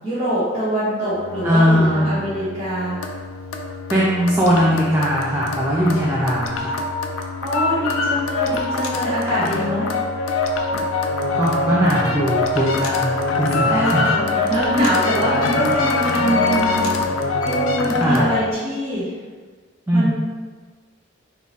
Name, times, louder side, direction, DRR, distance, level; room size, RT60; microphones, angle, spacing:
voice 1, 0.0-3.0 7.4-10.0 13.6-19.2 19.9-20.1, equal, 30° right, -13 dB, 1.3 m, -24 dB
sound 1, 1.1-18.5, left 3 dB, 90° left, 0.5 m, -24 dB
voice 2, 1.4-2.0 3.9-6.7 11.4-14.1 18.0-18.3 19.9-20.1, equal, 10° right, -7 dB, 0.5 m, -19 dB
3.7 x 3.0 x 4.1 m, 1.4 s
head